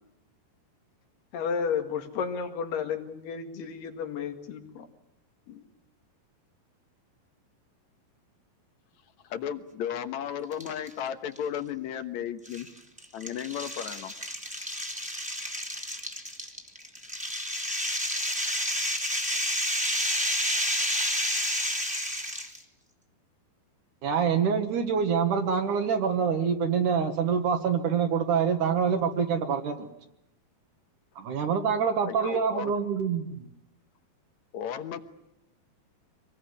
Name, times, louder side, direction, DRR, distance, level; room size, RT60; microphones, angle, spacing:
voice 1, 1.3-4.9 5.5-5.7, left 6 dB, 85° left, 5 dB, 4.1 m, -32 dB
voice 2, 9.3-12.7 13.1-14.1 32.1-32.7 34.5-35.0, left 9 dB, 65° left, 10 dB, 2.0 m, -34 dB
sound 1, 10.5-10.9 11.3-11.4 12.4-22.6, equal, 5° right, 1.7 m, -30 dB
voice 3, 24.0-29.9 31.2-33.5, right 6 dB, 60° right, 6 dB, 2.7 m, -26 dB
25.5 x 20.0 x 9.7 m, 0.86 s
omnidirectional pair, 4.4 m